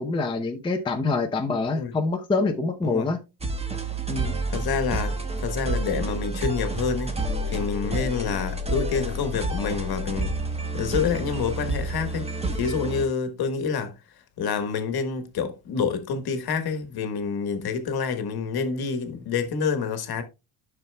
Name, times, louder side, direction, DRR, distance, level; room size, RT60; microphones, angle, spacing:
voice 1, 0.0-3.2 4.1-4.4, left 3 dB, 10° left, 0.6 m, -26 dB
sound 1, 3.4-13.1, right 2 dB, 15° right, 1.0 m, -29 dB
voice 2, 4.5-7.1 7.5-10.3 10.7-12.3 12.6-13.9 14.4-20.2, left 5 dB, 55° left, 1.4 m, -27 dB
11.0 x 5.9 x 2.2 m
cardioid pair, 140°, 45 cm